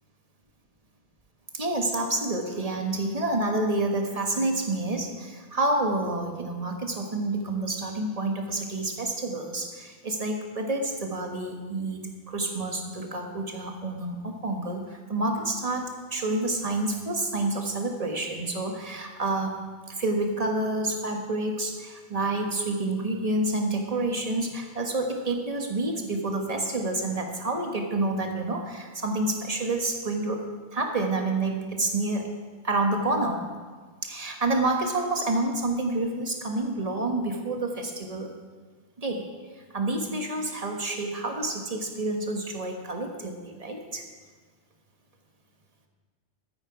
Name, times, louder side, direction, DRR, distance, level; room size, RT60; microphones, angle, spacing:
voice 1, 1.5-12.0 12.3-19.6 19.9-30.4 30.7-32.3 32.6-33.5 34.0-38.3 39.0-39.3 39.7-44.0, right 2 dB, 30° right, 3 dB, 1.4 m, -28 dB
13.5 x 9.0 x 4.8 m, 1.5 s
omnidirectional pair, 1.2 m